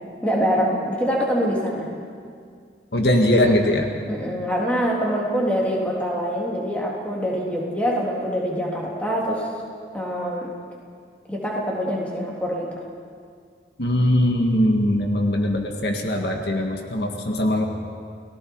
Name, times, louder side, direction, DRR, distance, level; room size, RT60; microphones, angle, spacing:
voice 1, 0.2-1.9 4.1-9.5 9.9-10.5 11.3-12.7, equal, 10° left, -4 dB, 3.3 m, -24 dB
voice 2, 2.9-3.9 13.8-17.6, left 1 dB, 70° left, 2 dB, 1.8 m, -21 dB
30.0 x 18.5 x 4.8 m, 2.2 s
head